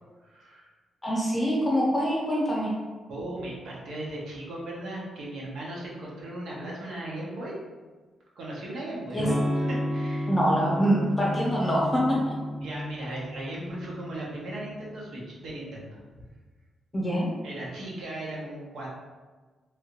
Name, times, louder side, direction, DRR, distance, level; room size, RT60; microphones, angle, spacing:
voice 1, 0.2-0.7 3.1-7.6 8.4-10.3 12.6-16.0 17.4-18.9, right 1 dB, 75° right, -4 dB, 0.9 m, -37 dB
voice 2, 1.0-2.7 9.1-9.3 10.3-12.3 16.9-17.3, equal, 20° left, -4 dB, 0.9 m, -25 dB
Electric guitar / Strum, 9.2-14.9, equal, 5° right, 0.3 m, -32 dB
3.2 x 2.5 x 2.9 m, 1.3 s
wide cardioid pair, 150°, 0 cm